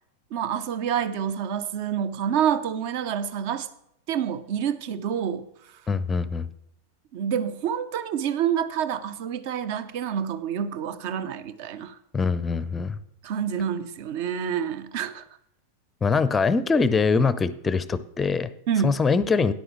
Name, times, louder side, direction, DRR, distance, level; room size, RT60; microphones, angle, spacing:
voice 1, 0.3-3.7 4.1-5.5 7.1-12.0 13.2-15.2 18.7-19.0, right 8 dB, 45° right, 14 dB, 0.7 m, -27 dB
voice 2, 5.9-6.5 12.1-13.0 16.0-18.5 18.8-19.5, left 4 dB, 15° left, 16 dB, 0.6 m, -23 dB
12.5 x 10.5 x 3.2 m, 0.80 s
figure-of-eight pair, 90°, 0 cm